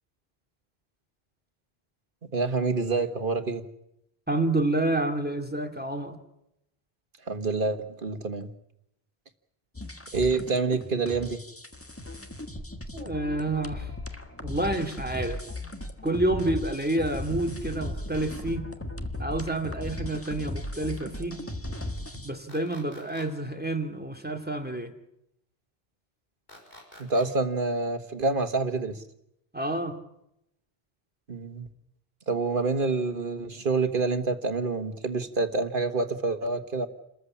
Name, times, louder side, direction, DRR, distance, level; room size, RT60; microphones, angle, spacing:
voice 1, 2.2-3.6 7.3-8.5 10.1-11.4 27.0-29.0 31.3-31.7 32.3-36.9, right 3 dB, 60° right, 9 dB, 1.7 m, -27 dB
voice 2, 4.3-6.2 12.9-13.9 14.4-15.4 16.0-18.7 19.2-21.4 22.2-24.9 29.5-30.0, right 1 dB, 10° right, 6 dB, 2.3 m, -29 dB
sound 1, 9.7-22.3, left 1 dB, 15° left, 1.5 m, -37 dB
sound 2, 22.5-23.3 26.5-27.3, left 1 dB, 65° left, 6.3 m, -48 dB
29.0 x 14.5 x 8.6 m, 0.81 s
omnidirectional pair, 1.0 m